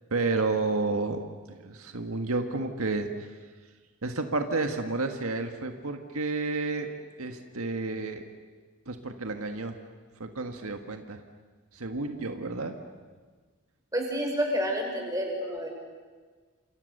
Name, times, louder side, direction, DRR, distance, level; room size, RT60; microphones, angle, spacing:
voice 1, 0.1-1.2 1.5-3.1 4.0-6.9 7.2-8.2 8.9-9.8 10.2-11.2 11.7-12.7 15.4-15.5, right 3 dB, 80° right, 5 dB, 1.7 m, -31 dB
voice 2, 13.9-15.7, equal, 15° right, 1 dB, 5.7 m, -29 dB
30.0 x 27.5 x 6.8 m, 1.5 s
head